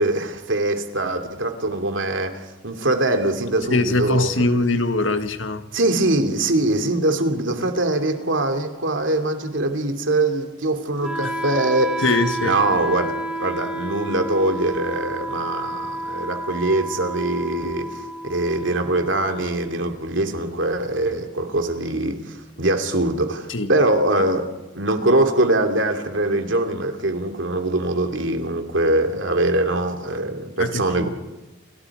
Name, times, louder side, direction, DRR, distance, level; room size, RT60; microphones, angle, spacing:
voice 1, 0.0-4.5 5.7-12.1 12.4-18.0 18.3-24.5 24.7-31.1, right 2 dB, 80° right, 5 dB, 2.8 m, -22 dB
voice 2, 3.7-5.6 11.2-11.3 12.0-12.6 23.5-23.7 30.6-31.1, left 2 dB, 85° left, 8 dB, 1.7 m, -22 dB
Wind instrument woodwind instrument, 11.0-21.0, right 1 dB, 5° right, 1.7 m, -31 dB
29.0 x 25.5 x 4.9 m, 1.0 s
head